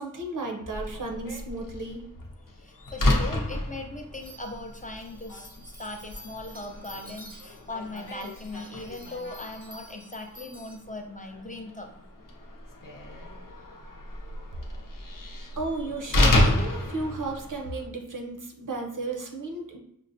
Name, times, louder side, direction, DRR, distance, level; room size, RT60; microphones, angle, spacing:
voice 1, 0.0-2.0 15.6-19.8, right 2 dB, 65° right, 1 dB, 0.6 m, -34 dB
Slam, 0.7-17.9, left 1 dB, 70° left, 0.6 m, -31 dB
voice 2, 2.6-12.0, left 2 dB, 25° left, 2 dB, 0.4 m, -39 dB
sound 1, 4.2-10.8, equal, 25° right, 0.5 m, -51 dB
5.2 x 2.1 x 2.6 m, 0.78 s
wide cardioid pair, 60°, 34 cm